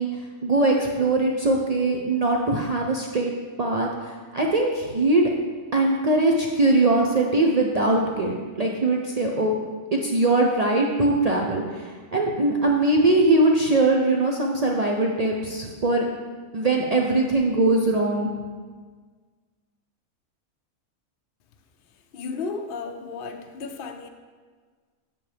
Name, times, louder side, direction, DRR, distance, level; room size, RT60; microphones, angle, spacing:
voice 1, 0.0-3.3 3.6-5.2 5.7-9.5 9.9-16.1 16.5-18.3, right 2 dB, 75° right, 0 dB, 0.3 m, -21 dB
voice 2, 22.1-24.1, left 4 dB, 60° left, 5 dB, 0.6 m, -33 dB
7.5 x 7.2 x 3.3 m, 1.5 s
omnidirectional pair, 1.5 m